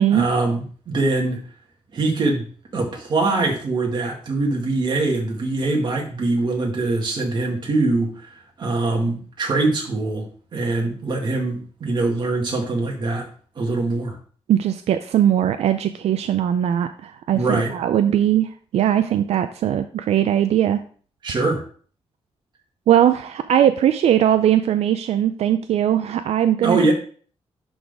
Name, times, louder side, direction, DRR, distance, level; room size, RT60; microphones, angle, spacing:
voice 1, 0.1-1.4 1.9-2.4 2.7-13.3 13.6-14.2 17.3-17.7 21.2-21.6 26.6-26.9, right 2 dB, 45° right, 1 dB, 1.9 m, -23 dB
voice 2, 14.5-20.8 22.9-26.8, right 10 dB, 85° right, 9 dB, 0.4 m, -19 dB
11.0 x 4.0 x 3.5 m, 0.44 s
wide cardioid pair, 165°, 11 cm